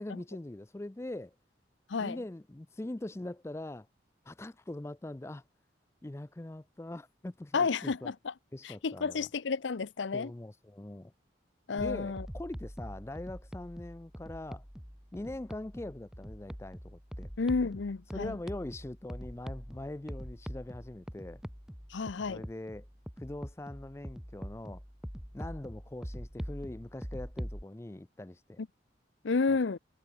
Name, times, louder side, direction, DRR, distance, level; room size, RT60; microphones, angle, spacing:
voice 1, 0.0-1.4 2.0-3.9 4.3-5.4 6.0-8.1 8.5-9.3 10.1-11.1 11.7-14.6 15.1-17.3 18.1-21.4 22.3-22.9 23.2-24.8 25.3-28.6, left 1 dB, 15° left, 0.4 m, -42 dB
voice 2, 1.9-2.2 7.5-8.3 8.6-10.3 11.7-12.3 17.4-18.4 21.9-22.4 29.2-29.8, left 4 dB, 80° left, 0.6 m, -31 dB
sound 1, 11.8-27.6, equal, 5° right, 1.4 m, -44 dB
head